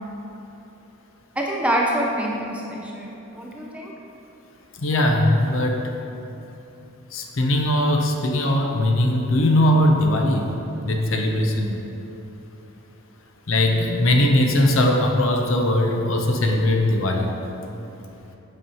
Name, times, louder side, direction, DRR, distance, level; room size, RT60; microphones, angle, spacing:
voice 1, 1.4-3.9, right 1 dB, 5° right, -2 dB, 0.5 m, -26 dB
voice 2, 4.8-5.8 7.1-11.7 13.5-17.3, left 1 dB, 60° left, 2 dB, 0.7 m, -20 dB
8.1 x 5.5 x 2.9 m, 2.9 s
head